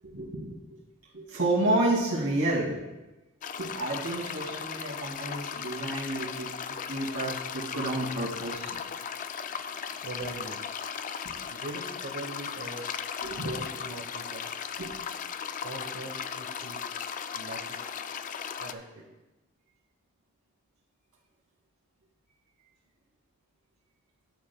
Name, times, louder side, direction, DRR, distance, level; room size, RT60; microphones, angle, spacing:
voice 1, 0.0-0.8 1.1-2.8 3.6-8.8 11.2-11.3 13.2-13.6 14.8-14.9, right 1 dB, 80° right, -4 dB, 2.4 m, -30 dB
sound 1, 3.4-18.7, left 7 dB, 40° left, 0.3 m, -37 dB
voice 2, 10.0-10.6 11.5-12.9 13.4-14.5 15.6-16.8 17.3-17.6 18.6-19.0, right 2 dB, 60° right, -2 dB, 1.0 m, -41 dB
11.5 x 7.5 x 2.3 m, 1.1 s
head